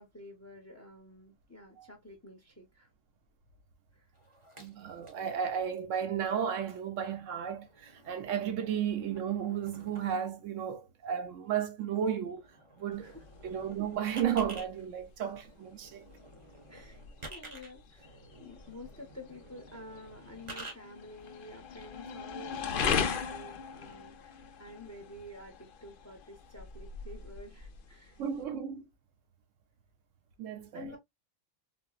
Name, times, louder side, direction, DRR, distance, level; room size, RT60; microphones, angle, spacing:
voice 1, 0.0-2.9 3.9-4.1 13.0-13.3 16.7-17.0 17.3-28.2 30.7-31.0, left 1 dB, 15° left, 0.6 m, -50 dB
sound 1, 4.1-5.4 6.0-6.2 7.1-10.3 12.0-12.1 12.3-14.7 15.4-20.7, right 2 dB, 30° right, 0.7 m, -51 dB
voice 2, 4.6-12.4 12.8-13.1 13.4-16.1 28.2-28.9 30.4-30.8, right 8 dB, 75° right, 0.9 m, -33 dB
sound 2, 12.9-28.4, left 6 dB, 65° left, 0.5 m, -39 dB
4.2 x 2.0 x 2.2 m
omnidirectional pair, 1.4 m